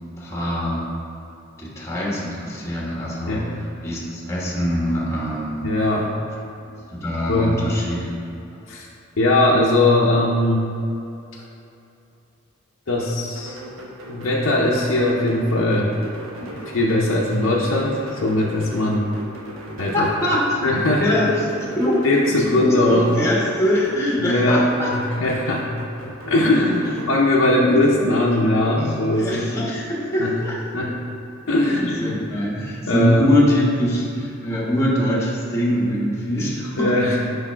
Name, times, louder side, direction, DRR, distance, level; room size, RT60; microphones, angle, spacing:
voice 1, 0.2-0.9 1.6-5.6 6.6-8.0 16.4-16.5 19.9-22.0 22.5-24.9 27.6-30.6 31.6-37.2, left 1 dB, 15° left, -5 dB, 1.3 m, -23 dB
voice 2, 5.6-6.1 7.3-7.6 8.7-8.9 9.2-10.7 12.9-13.6 14.1-15.9 16.7-19.1 19.8-20.1 20.6-21.1 22.0-23.3 24.2-24.7 24.9-25.7 26.0-29.5 30.2-30.3 30.7-30.9 31.5-32.2 32.9-33.3 36.8-37.2, left 1 dB, 60° left, -4 dB, 0.7 m, -20 dB
sound 1, 13.3-27.1, right 1 dB, 70° right, 1.0 m, -38 dB
6.0 x 5.3 x 4.5 m, 2.7 s
head